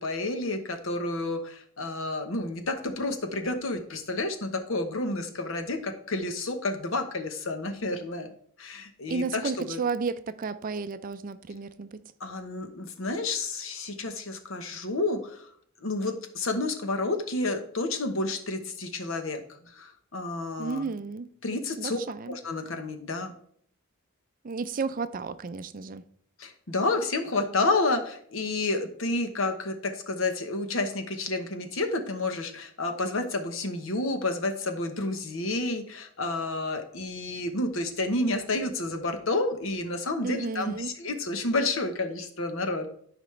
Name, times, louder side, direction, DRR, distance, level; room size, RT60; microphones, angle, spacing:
voice 1, 0.0-8.3 8.6-9.8 12.2-15.5 15.8-19.4 19.7-20.9 21.4-22.0 22.3-23.3 26.4-42.9, left 2 dB, 70° left, 1.1 m, -30 dB
voice 2, 9.1-12.0 20.6-21.3 21.8-22.4 24.4-26.0 40.2-40.9, right 4 dB, 40° right, 0.4 m, -32 dB
13.0 x 5.1 x 3.3 m
head